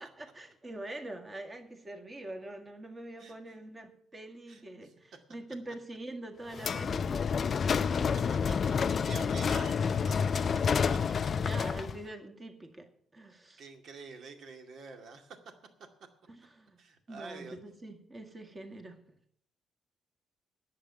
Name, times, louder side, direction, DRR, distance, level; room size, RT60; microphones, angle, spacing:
voice 1, 0.0-8.2 11.4-13.7 16.3-16.8 17.1-19.2, right 1 dB, 20° right, 5 dB, 1.9 m, -45 dB
sound 1, 6.6-12.0, left 6 dB, 40° left, 0.4 m, -29 dB
voice 2, 8.8-10.7 13.6-15.4 16.8-17.6, right 4 dB, 60° right, 5 dB, 2.2 m, -47 dB
10.5 x 7.7 x 9.2 m, 0.63 s
cardioid pair, 130°, 0 cm